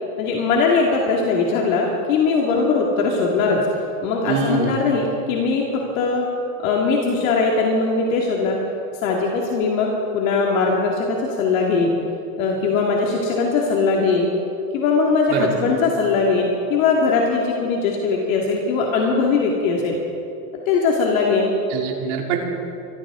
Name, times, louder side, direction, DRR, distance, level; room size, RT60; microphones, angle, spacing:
voice 1, 0.2-3.6 4.0-6.3 6.6-8.6 9.0-12.0 12.4-14.3 14.7-20.0 20.7-21.5, left 4 dB, 60° left, -1 dB, 2.1 m, -20 dB
voice 2, 4.3-4.7 15.3-15.5 21.7-22.4, right 5 dB, 45° right, 0 dB, 2.8 m, -23 dB
23.5 x 14.5 x 3.7 m, 2.8 s
supercardioid pair, 170°, 47 cm